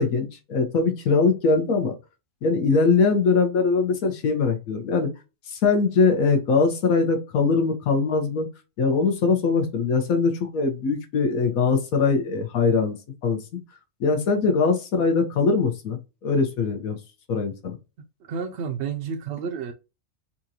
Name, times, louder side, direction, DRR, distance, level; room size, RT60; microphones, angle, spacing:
voice 1, 0.0-1.9 2.4-5.1 5.5-8.5 8.8-13.0 13.2-13.4 14.0-17.0 17.3-17.7, left 4 dB, 75° left, 1.3 m, -22 dB
voice 2, 18.2-19.7, right 6 dB, 65° right, 0.7 m, -30 dB
4.3 x 2.5 x 2.8 m
omnidirectional pair, 1.5 m